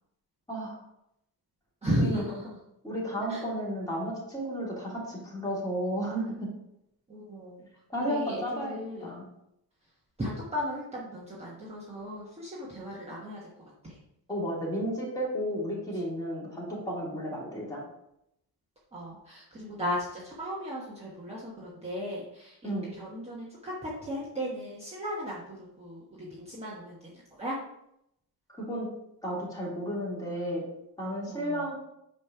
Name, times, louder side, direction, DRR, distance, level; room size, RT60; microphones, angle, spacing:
voice 1, 0.5-0.8 1.9-2.2 2.8-6.5 7.9-9.2 14.3-17.8 22.6-22.9 28.5-28.9 29.2-30.6 31.0-31.7, equal, 10° left, -5 dB, 2.4 m, -33 dB
voice 2, 1.8-2.6 3.3-3.4 7.1-7.7 8.0-9.1 10.2-13.5 13.8-14.0 18.9-27.6 31.3-31.7, equal, 15° right, -6 dB, 1.2 m, -36 dB
9.0 x 3.3 x 5.6 m, 0.80 s
wide cardioid pair, 175°, 38 cm